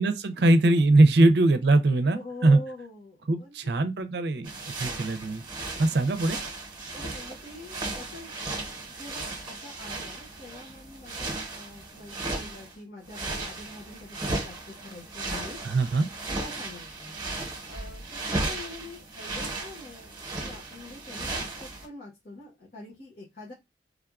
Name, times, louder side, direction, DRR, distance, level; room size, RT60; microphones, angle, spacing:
voice 1, 0.0-2.6 3.3-4.5 4.8-5.4 5.8-6.4 15.6-16.1, right 2 dB, 65° right, 0.5 m, -21 dB
voice 2, 2.0-3.7 6.9-8.4 9.0-15.7 16.3-17.1 17.6-23.5, left 2 dB, 60° left, 1.1 m, -45 dB
sound 1, 4.4-12.7 13.1-21.9, right 2 dB, 25° right, 0.9 m, -36 dB
3.5 x 2.3 x 2.3 m
head